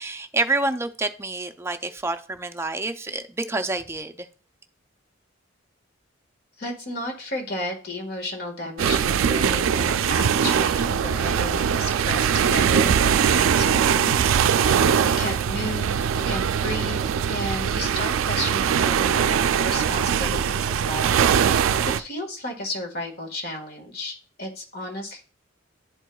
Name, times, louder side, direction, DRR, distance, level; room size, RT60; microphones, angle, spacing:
voice 1, 0.0-4.3, right 2 dB, 15° right, 0.4 m, -28 dB
voice 2, 6.6-25.2, left 1 dB, 55° left, 1.6 m, -33 dB
sound 1, 8.8-22.0, right 8 dB, 90° right, 0.3 m, -21 dB
11.0 x 4.5 x 2.3 m
head